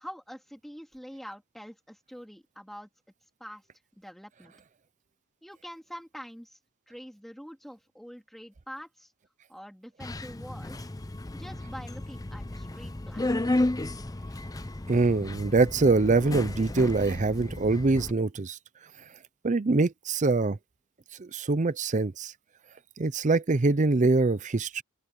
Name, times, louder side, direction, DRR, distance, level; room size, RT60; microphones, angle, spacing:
voice 1, 0.0-2.9 3.4-3.7 4.0-4.5 5.4-6.6 6.9-9.1 9.5-10.9 11.3-13.3, equal, ahead, 3.0 m, -45 dB
Subway metro underground, 10.0-18.1, left 1 dB, 15° left, 0.6 m, -33 dB
voice 2, 14.9-18.6 19.4-20.6 21.2-22.3 23.0-24.8, right 3 dB, 35° right, 0.6 m, -24 dB
open air
head